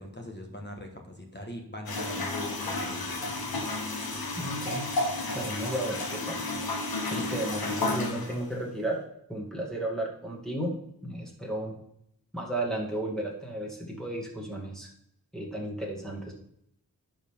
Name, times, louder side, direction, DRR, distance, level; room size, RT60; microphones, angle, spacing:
voice 1, 0.0-3.2, left 1 dB, 30° left, 1 dB, 1.6 m, -42 dB
sound 1, 1.9-8.4, left 2 dB, 85° left, 1.3 m, -32 dB
voice 2, 4.4-4.9 5.3-6.4 7.1-9.0 9.3-10.8 11.0-11.7 12.3-14.9 15.3-16.3, right 1 dB, ahead, -3 dB, 2.1 m, -33 dB
10.5 x 5.0 x 3.7 m, 0.75 s
cardioid pair, 40°, 35 cm